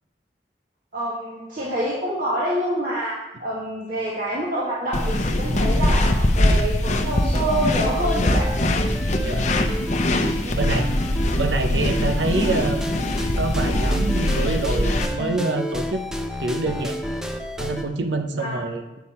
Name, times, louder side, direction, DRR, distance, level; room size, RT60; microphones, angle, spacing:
voice 1, 0.9-8.5 9.8-9.9 10.4-10.6 11.2-11.3 18.4-18.6, right 1 dB, 50° right, -7 dB, 1.6 m, -27 dB
sound 1, 4.9-15.1, left 1 dB, 40° left, 0.7 m, -22 dB
sound 2, 7.1-11.5 11.9-17.8, equal, 5° right, 0.5 m, -31 dB
voice 2, 10.5-10.9 11.4-12.9 13.4-16.0 16.4-17.0 17.6-18.8, right 2 dB, 85° right, 6 dB, 0.8 m, -26 dB
9.3 x 5.9 x 4.3 m, 0.97 s
head